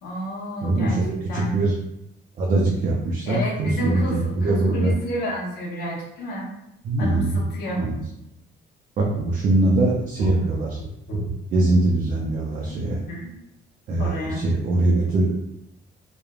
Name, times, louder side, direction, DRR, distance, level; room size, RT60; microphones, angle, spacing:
voice 1, 0.0-1.0 1.3-1.6 3.3-6.5 7.0-7.8 10.2-10.4 11.1-11.3 12.8-13.3 14.0-14.4, equal, 55° left, -5 dB, 0.8 m, -30 dB
voice 2, 0.6-1.8 2.4-4.9 6.8-7.4 7.8-8.0 9.0-10.8 11.5-13.0 13.9-15.4, right 2 dB, 40° right, -2 dB, 0.4 m, -22 dB
3.1 x 2.0 x 2.3 m, 0.81 s
cardioid pair, 180°, 20 cm